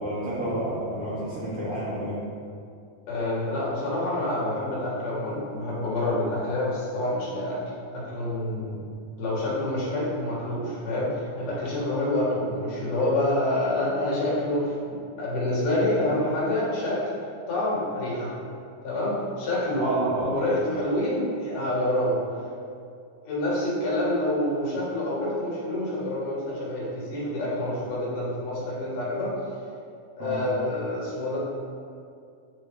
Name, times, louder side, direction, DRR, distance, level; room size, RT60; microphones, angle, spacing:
voice 1, 0.0-2.2 19.7-20.3 30.2-30.6, right 1 dB, 60° right, -9 dB, 1.6 m, -29 dB
voice 2, 3.1-7.6 7.9-8.8 9.2-17.0 17.5-18.3 18.8-20.0 20.2-22.2 23.2-29.3 30.2-31.4, left 1 dB, 75° left, -7 dB, 3.2 m, -27 dB
9.7 x 3.4 x 3.3 m, 2.4 s
omnidirectional pair, 3.7 m